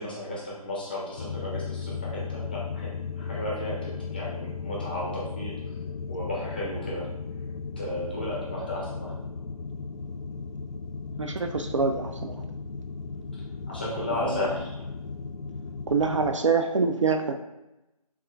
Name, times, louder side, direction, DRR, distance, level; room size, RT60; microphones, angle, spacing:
voice 1, 0.0-5.6 6.1-7.1 7.8-9.2 13.7-14.8, left 1 dB, 15° left, -5 dB, 0.5 m, -34 dB
sound 1, 1.2-16.4, left 5 dB, 65° left, 0.4 m, -36 dB
voice 2, 11.2-12.4 14.2-14.5 15.9-17.3, right 4 dB, 55° right, 6 dB, 0.4 m, -25 dB
6.8 x 2.4 x 2.3 m, 0.97 s
figure-of-eight pair, 165°, 19 cm